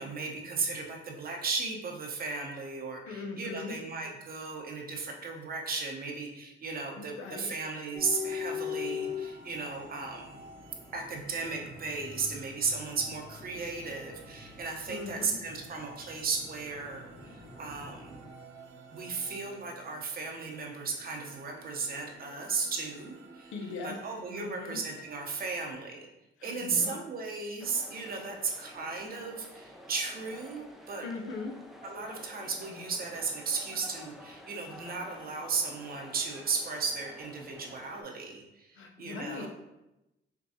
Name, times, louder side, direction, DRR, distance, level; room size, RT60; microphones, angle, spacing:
voice 1, 0.0-10.4 10.9-18.2 18.9-23.5 23.8-26.1 26.4-31.0 31.8-39.5, right 4 dB, 50° right, 1 dB, 0.8 m, -35 dB
voice 2, 3.1-3.8 7.0-7.5 14.9-15.4 23.5-24.0 24.4-24.8 26.4-27.0 31.0-31.5 38.8-39.5, left 4 dB, 80° left, 2 dB, 0.7 m, -40 dB
sound 1, 7.9-18.3, left 7 dB, 20° left, 0.8 m, -43 dB
sound 2, 8.0-25.7, right 3 dB, 85° right, 0.6 m, -53 dB
sound 3, 27.6-38.0, left 1 dB, ahead, 0.5 m, -50 dB
5.9 x 2.3 x 2.7 m, 0.94 s
cardioid pair, 90°, 20 cm